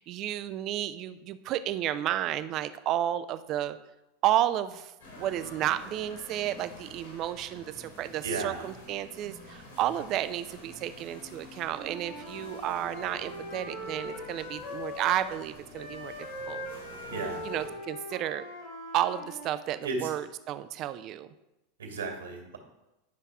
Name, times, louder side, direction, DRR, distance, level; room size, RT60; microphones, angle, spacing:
voice 1, 0.0-3.8 4.2-16.1 16.5-16.7 17.4-18.4 18.9-21.3, right 12 dB, 45° right, 12 dB, 0.6 m, -32 dB
sound 1, 5.0-17.7, left 1 dB, 80° left, 3.8 m, -49 dB
voice 2, 8.2-8.6 17.1-17.4 19.8-20.1 21.8-22.6, right 3 dB, 75° right, 2 dB, 2.3 m, -34 dB
Wind instrument woodwind instrument, 11.7-15.4 15.7-19.6, left 1 dB, 50° left, 3.1 m, -41 dB
10.5 x 5.5 x 4.7 m, 0.95 s
figure-of-eight pair, 85°, 0 cm